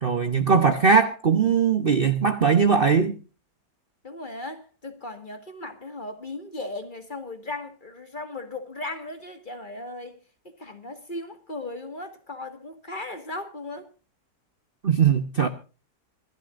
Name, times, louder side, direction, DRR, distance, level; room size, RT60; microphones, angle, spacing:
voice 1, 0.0-3.2 14.8-15.5, right 6 dB, 40° right, 1.0 m, -20 dB
voice 2, 4.0-10.2 10.6-13.9, left 2 dB, 30° left, 1.9 m, -37 dB
26.0 x 12.0 x 2.5 m
omnidirectional pair, 1.8 m